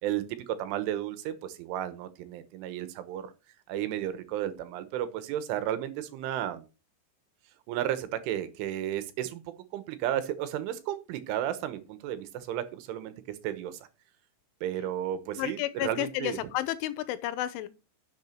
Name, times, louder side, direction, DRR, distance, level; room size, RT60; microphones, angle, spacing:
voice 1, 0.0-3.3 3.7-6.6 7.7-13.1 13.4-13.9 14.6-16.5, right 11 dB, 85° right, 3.6 m, -33 dB
voice 2, 15.4-17.7, left 14 dB, 85° left, 3.2 m, -31 dB
11.0 x 7.3 x 4.5 m
omnidirectional pair, 5.6 m